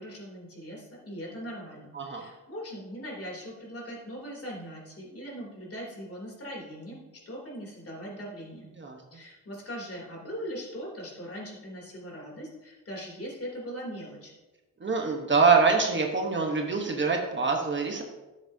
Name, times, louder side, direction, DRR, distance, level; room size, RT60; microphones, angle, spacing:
voice 1, 0.0-8.7 9.1-14.3, equal, 45° left, -2 dB, 3.1 m, -40 dB
voice 2, 14.8-18.0, right 4 dB, 35° right, 2 dB, 1.1 m, -24 dB
13.0 x 7.5 x 2.8 m, 1.1 s
wide cardioid pair, 125°, 32 cm